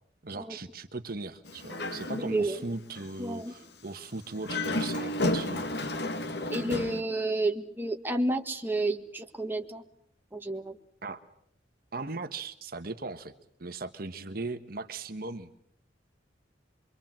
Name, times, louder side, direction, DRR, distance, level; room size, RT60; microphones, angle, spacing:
voice 1, 0.2-5.7 11.0-11.2 11.9-13.3 13.6-15.5, right 3 dB, 50° right, 9 dB, 1.3 m, -38 dB
Dog, 1.4-2.6 3.0-3.1 4.3-7.0, left 1 dB, 60° left, 1.8 m, -32 dB
voice 2, 2.2-2.6 3.2-3.5 6.5-9.8 10.3-10.8, right 2 dB, 10° right, 3 dB, 1.7 m, -30 dB
25.5 x 24.0 x 7.5 m, 0.69 s
head